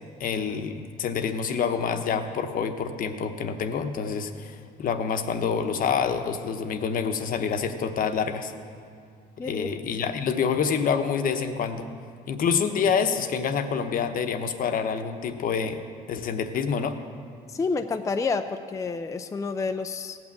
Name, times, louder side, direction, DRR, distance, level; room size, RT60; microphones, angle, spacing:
voice 1, 0.2-8.5 9.4-11.9 12.3-15.8 16.1-17.0, left 6 dB, 55° left, 8 dB, 1.0 m, -27 dB
voice 2, 17.5-20.2, left 4 dB, 20° left, 7 dB, 0.4 m, -29 dB
17.0 x 6.1 x 7.7 m, 2.3 s
cardioid pair, 110°, 17 cm